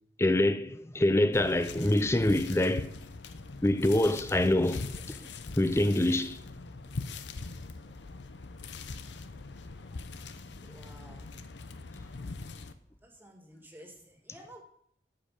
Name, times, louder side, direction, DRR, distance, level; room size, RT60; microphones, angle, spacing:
voice 1, 0.2-2.9 3.6-5.2 5.5-6.4, left 1 dB, 15° left, 0.5 m, -25 dB
sound 1, 1.3-12.7, left 3 dB, 75° left, 0.7 m, -42 dB
voice 2, 10.7-11.3 13.0-14.6, right 1 dB, 10° right, 1.8 m, -52 dB
13.5 x 5.2 x 5.8 m
head